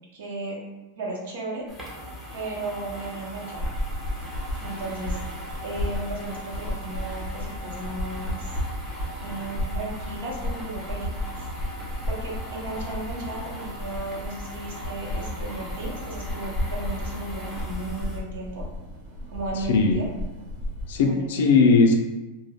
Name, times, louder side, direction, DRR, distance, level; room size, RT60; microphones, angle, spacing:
voice 1, 0.1-0.6 1.0-1.7 2.3-3.7 4.6-5.2 5.6-8.5 9.2-11.4 12.1-18.6 19.3-20.1 21.0-21.3, right 2 dB, 70° right, -2 dB, 0.7 m, -35 dB
sound 1, 1.7-18.2, equal, 5° right, 0.4 m, -39 dB
sound 2, 3.5-21.1, left 1 dB, 85° right, 1.1 m, -34 dB
voice 2, 19.7-20.0 20.9-22.0, left 4 dB, 60° left, 3 dB, 0.4 m, -18 dB
2.2 x 2.1 x 3.3 m, 1.1 s
supercardioid pair, 175°, 0 cm